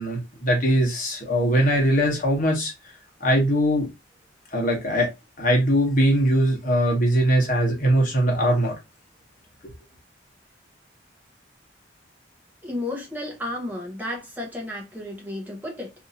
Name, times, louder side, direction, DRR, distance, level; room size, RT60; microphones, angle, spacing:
voice 1, 0.0-2.7 3.2-3.9 4.5-5.1 5.4-8.7, equal, 45° left, 1.1 m, -21 dB
voice 2, 12.6-15.9, left 1 dB, 10° right, 0.8 m, -32 dB
2.8 x 2.6 x 2.5 m
head